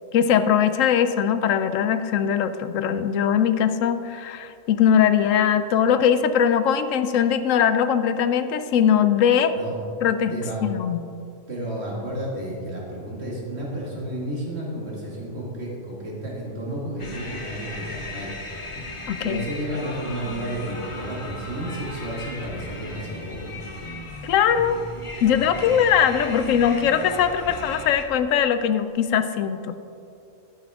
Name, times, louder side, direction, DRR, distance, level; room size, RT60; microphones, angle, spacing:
voice 1, 0.1-9.5 10.0-10.3 10.6-11.0 19.1-19.4 24.2-24.8 25.2-29.7, left 8 dB, 85° left, 11 dB, 1.0 m, -21 dB
voice 2, 11.5-18.3 19.2-23.5 25.7-25.9, right 1 dB, 55° right, -4 dB, 2.4 m, -32 dB
sound 1, 17.0-28.0, left 2 dB, 30° left, 0.8 m, -36 dB
11.0 x 9.1 x 3.6 m, 2.6 s
omnidirectional pair, 1.3 m